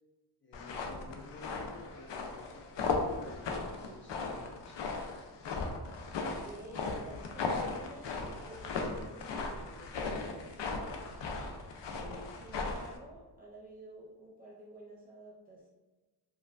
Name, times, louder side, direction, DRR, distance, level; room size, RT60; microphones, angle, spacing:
voice 1, 0.4-4.7, left 3 dB, 25° left, -3 dB, 0.8 m, -52 dB
sound 1, 0.5-13.0, left 4 dB, 75° left, 0.6 m, -37 dB
voice 2, 6.1-10.7 12.0-15.7, right 1 dB, 20° right, -5 dB, 0.4 m, -51 dB
4.7 x 2.2 x 2.4 m, 1.2 s
wide cardioid pair, 150°, 43 cm